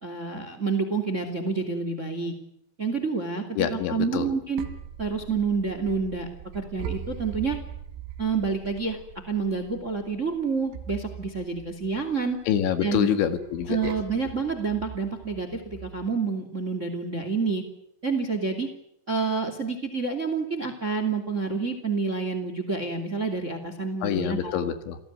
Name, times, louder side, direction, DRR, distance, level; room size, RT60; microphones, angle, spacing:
voice 1, 0.0-2.3 2.8-4.7 5.0-6.3 6.5-7.6 8.2-9.0 9.3-12.4 12.8-13.1 13.7-17.6 18.0-18.7 19.1-24.6, right 4 dB, 20° right, 9 dB, 2.0 m, -28 dB
voice 2, 3.6-4.3 12.5-13.9 24.0-25.0, left 9 dB, 75° left, 9 dB, 4.1 m, -26 dB
sound 1, 4.2-16.1, right 9 dB, 85° right, 4.6 m, -41 dB
28.5 x 17.5 x 9.6 m, 0.78 s
omnidirectional pair, 5.5 m